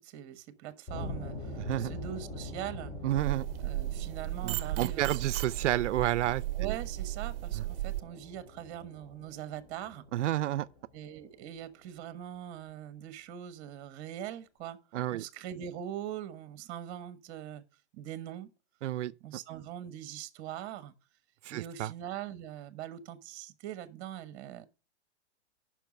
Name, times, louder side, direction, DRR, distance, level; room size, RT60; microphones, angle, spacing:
voice 1, 0.0-2.9 3.6-5.2 6.6-10.0 10.9-14.8 15.1-17.6 17.9-18.5 19.2-20.9 21.5-24.6, right 11 dB, 35° right, 1.3 m, -42 dB
sound 1, 0.9-11.6, left 1 dB, 20° left, 2.7 m, -44 dB
voice 2, 1.6-1.9 3.0-3.5 4.4-6.8 7.5-7.6 10.1-10.7 14.9-15.2 18.8-19.1 21.4-21.9, right 13 dB, 90° right, 0.5 m, -30 dB
sound 2, 3.2-8.0, right 16 dB, 55° right, 0.7 m, -35 dB
9.1 x 5.9 x 6.2 m
hypercardioid pair, 150°, 35 cm